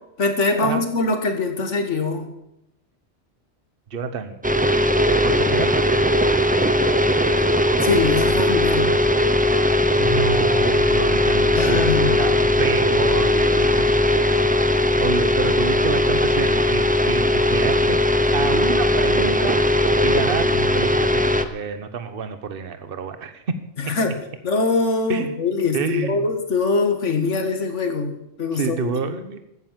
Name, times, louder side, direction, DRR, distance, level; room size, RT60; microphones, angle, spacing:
voice 1, 0.2-2.3 7.4-7.5 7.8-8.9 11.5-12.2 23.8-24.2 24.4-28.9, left 3 dB, 85° left, 7 dB, 2.0 m, -23 dB
voice 2, 3.9-4.3 5.1-5.8 9.9-13.9 14.1-18.0 18.3-19.6 20.0-23.6 23.9-24.0 25.1-25.4 25.7-26.3 28.5-29.4, right 5 dB, 55° right, 10 dB, 1.2 m, -28 dB
sound 1, 4.4-21.4, left 1 dB, 10° right, 0.6 m, -19 dB
14.0 x 9.7 x 7.4 m, 0.87 s
omnidirectional pair, 1.2 m